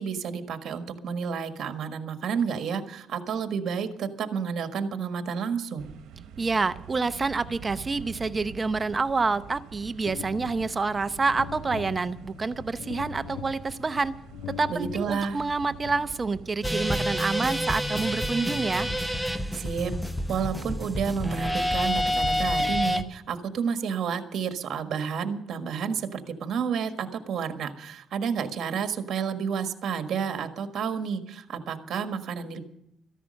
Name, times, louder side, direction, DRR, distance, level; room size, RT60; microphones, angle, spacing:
voice 1, 0.0-5.9 14.7-15.4 19.5-19.9 20.3-32.6, right 6 dB, 65° right, 7 dB, 1.5 m, -30 dB
sound 1, 5.8-18.2, right 8 dB, 85° right, 1.2 m, -45 dB
voice 2, 6.4-14.1 14.5-18.9, right 4 dB, 30° right, 13 dB, 0.7 m, -28 dB
sound 2, 10.1-16.7, left 9 dB, 80° left, 0.6 m, -42 dB
sound 3, 16.6-23.0, equal, 5° left, 1.1 m, -28 dB
14.5 x 11.0 x 6.5 m, 0.80 s
cardioid pair, 90°, 0 cm